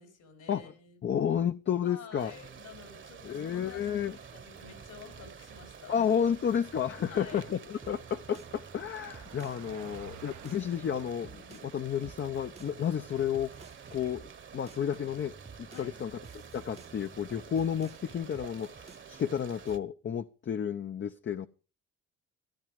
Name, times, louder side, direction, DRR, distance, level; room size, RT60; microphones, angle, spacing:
voice 1, 0.0-1.0 1.8-4.0 4.3-6.0 7.1-7.8 9.8-10.0 10.2-10.4 15.7-16.0, left 6 dB, 80° left, 4.6 m, -50 dB
voice 2, 1.0-2.3 3.2-4.2 5.9-13.6 13.9-15.3 15.6-16.1 16.5-21.5, left 8 dB, 40° left, 0.6 m, -31 dB
sound 1, 2.2-19.8, right 7 dB, 40° right, 1.1 m, -50 dB
sound 2, 2.3-2.6 3.6-5.7 6.3-11.8 12.0-14.4 14.7-19.8, right 4 dB, 20° right, 0.8 m, -53 dB
Car passing by, 4.8-18.8, right 11 dB, 85° right, 1.1 m, -58 dB
14.0 x 12.0 x 5.1 m
cardioid pair, 90°, 30 cm